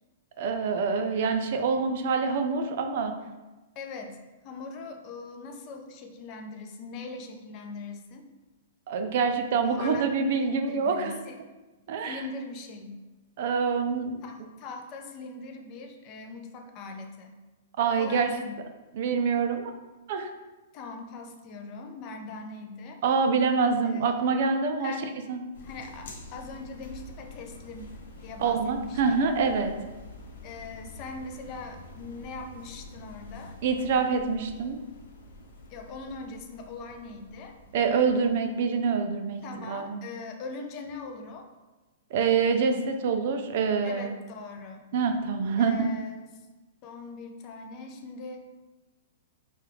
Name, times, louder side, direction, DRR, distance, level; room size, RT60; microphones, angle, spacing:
voice 1, 0.4-3.1 8.9-11.2 11.9-12.2 13.4-14.2 17.8-18.3 18.9-19.7 20.1-20.3 23.0-24.9 25.3-25.4 28.4-29.7 33.6-34.8 37.7-39.4 39.7-40.0 42.1-44.1 44.9-45.9, right 5 dB, 45° right, 6 dB, 0.4 m, -26 dB
voice 2, 3.8-4.2 4.4-8.3 9.6-10.0 10.7-11.4 12.0-13.0 14.2-17.4 18.0-18.6 20.7-23.0 23.8-24.4 24.8-25.1 25.6-27.9 28.2-29.0 30.4-33.6 35.7-37.6 39.4-41.5 43.8-44.8 45.6-46.5 46.8-48.5, left 3 dB, 25° left, 4 dB, 0.4 m, -41 dB
sound 1, 25.5-38.5, left 2 dB, 70° left, 0.8 m, -47 dB
4.6 x 2.3 x 3.3 m, 1.2 s
hypercardioid pair, 170°, 0 cm